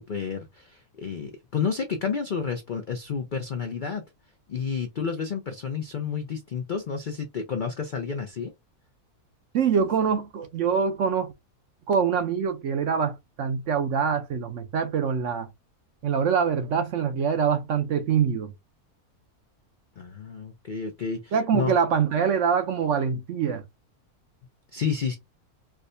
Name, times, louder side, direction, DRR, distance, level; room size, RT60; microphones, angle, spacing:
voice 1, 0.0-4.0 4.5-8.5 20.0-21.7 24.7-25.1, left 6 dB, 70° left, 0.4 m, -30 dB
voice 2, 9.5-11.3 11.9-15.5 16.0-18.5 21.3-23.6, right 7 dB, 65° right, 0.8 m, -24 dB
4.7 x 2.1 x 2.6 m
omnidirectional pair, 1.6 m